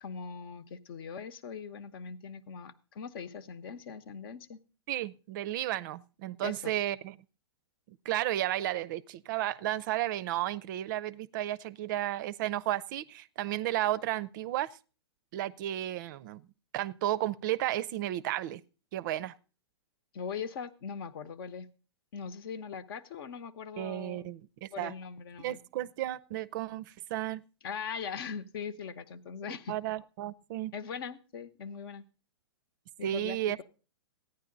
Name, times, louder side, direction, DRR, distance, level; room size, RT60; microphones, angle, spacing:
voice 1, 0.0-4.6 6.4-6.7 20.1-21.7 22.1-24.3 24.7-25.6 27.6-29.8 30.7-32.0 33.0-33.6, left 6 dB, 55° left, 14 dB, 1.0 m, -41 dB
voice 2, 4.9-7.2 7.9-14.8 15.3-16.5 16.7-18.6 18.9-19.3 23.8-24.9 25.4-27.4 29.4-30.7 33.0-33.6, right 13 dB, 45° right, 18 dB, 0.5 m, -33 dB
14.5 x 9.8 x 3.9 m, 0.35 s
hypercardioid pair, 125°, 14 cm